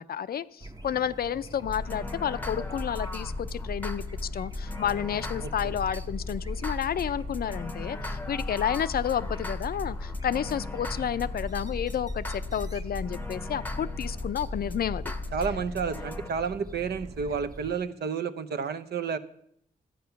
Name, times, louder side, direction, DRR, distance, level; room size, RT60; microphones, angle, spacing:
voice 1, 0.0-4.0 4.3-15.1, left 9 dB, 65° left, 15 dB, 0.5 m, -31 dB
sound 1, 0.6-17.8, right 1 dB, 20° right, 0.8 m, -44 dB
sound 2, 1.7-16.3, left 2 dB, 10° left, 0.8 m, -36 dB
voice 2, 15.3-19.2, right 6 dB, 70° right, 11 dB, 0.8 m, -30 dB
12.5 x 9.1 x 5.8 m, 0.71 s
wide cardioid pair, 110°, 17 cm